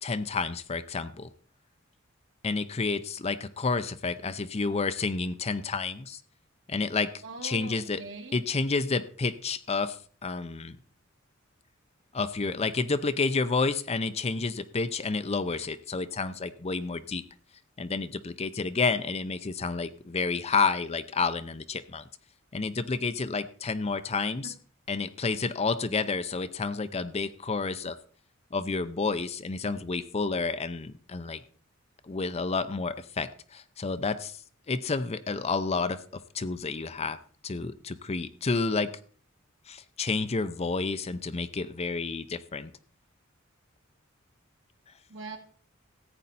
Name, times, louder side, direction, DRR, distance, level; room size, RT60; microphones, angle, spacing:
voice 1, 0.0-1.3 2.4-6.2 6.7-8.0 8.3-10.8 12.1-17.2 17.8-22.0 22.5-24.5 24.9-28.0 28.5-31.4 32.0-34.4 34.7-37.2 37.4-38.9 39.7-42.7, left 4 dB, 30° left, 11 dB, 0.6 m, -30 dB
voice 2, 7.2-8.4 24.4-24.5 45.1-45.4, right 3 dB, 65° right, 3 dB, 2.2 m, -41 dB
14.5 x 8.8 x 4.1 m, 0.44 s
head